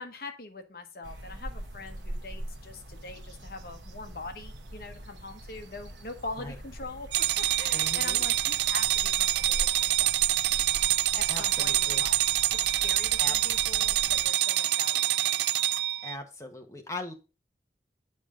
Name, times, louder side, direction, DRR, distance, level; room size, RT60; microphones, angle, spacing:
voice 1, 0.0-7.1 7.4-10.2 11.1-12.2 12.5-15.4, left 3 dB, 55° left, 6 dB, 1.2 m, -43 dB
sound 1, 1.0-14.3, right 1 dB, 90° right, 1.1 m, -42 dB
sound 2, 7.1-16.2, right 14 dB, 70° right, 0.3 m, -26 dB
voice 2, 7.7-8.2 11.3-12.0 13.2-13.4 16.0-17.1, left 2 dB, 15° left, 3 dB, 1.1 m, -40 dB
8.1 x 5.2 x 5.0 m, 0.32 s
head